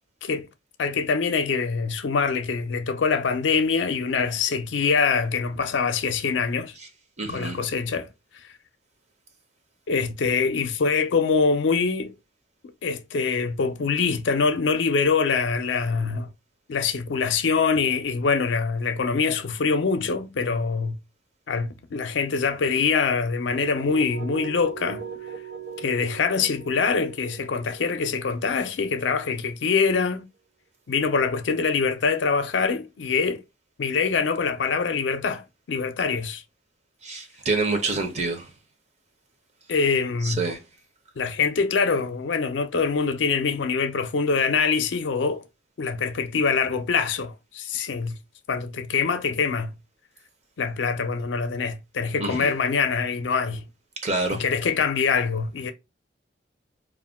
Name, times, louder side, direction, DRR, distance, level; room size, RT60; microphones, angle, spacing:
voice 1, 0.8-6.7 7.3-8.1 9.9-12.1 12.8-16.3 16.7-21.0 21.5-25.0 25.8-30.2 30.9-33.4 33.8-36.4 39.7-40.4 41.2-45.4 45.8-48.2 48.5-49.7 50.6-53.6 54.3-55.7, left 5 dB, 75° left, 0.5 m, -24 dB
voice 2, 7.2-7.6 37.0-38.5 40.3-40.6 52.2-52.5 54.0-54.4, right 3 dB, 35° right, 0.6 m, -27 dB
sound 1, 23.5-29.3, right 7 dB, 90° right, 1.2 m, -39 dB
2.3 x 2.2 x 3.4 m
head